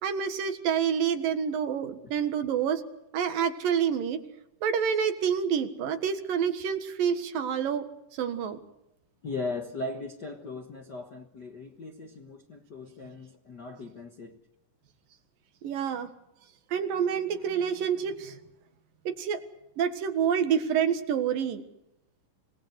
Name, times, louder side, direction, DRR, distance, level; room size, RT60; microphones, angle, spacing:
voice 1, 0.0-2.8 3.1-4.2 4.6-7.9 8.1-8.6 15.6-16.1 16.7-18.4 19.0-19.4 19.8-21.6, right 7 dB, 75° right, 3.3 m, -28 dB
voice 2, 9.2-14.4, left 3 dB, 55° left, 1.2 m, -38 dB
26.0 x 19.0 x 8.1 m
omnidirectional pair, 4.0 m